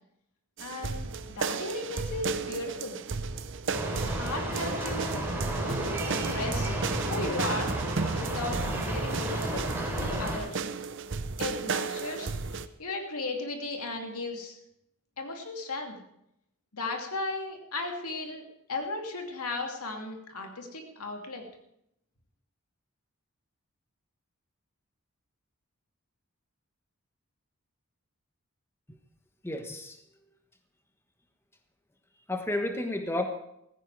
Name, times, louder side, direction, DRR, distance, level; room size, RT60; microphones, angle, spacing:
voice 1, 0.6-3.0 4.2-5.3 5.5-6.7 7.1-7.7 8.2-9.7 10.0-10.7 11.4-14.6 15.2-16.0 16.7-18.4 18.7-21.4, left 2 dB, 85° left, 3 dB, 2.5 m, -36 dB
sound 1, 0.6-12.7, right 4 dB, 55° right, 0.7 m, -34 dB
sound 2, 3.7-10.4, right 1 dB, 10° right, 3.9 m, -32 dB
voice 2, 29.4-30.0 32.3-33.2, left 1 dB, 10° left, 5 dB, 1.2 m, -31 dB
15.5 x 15.0 x 4.7 m, 0.78 s
head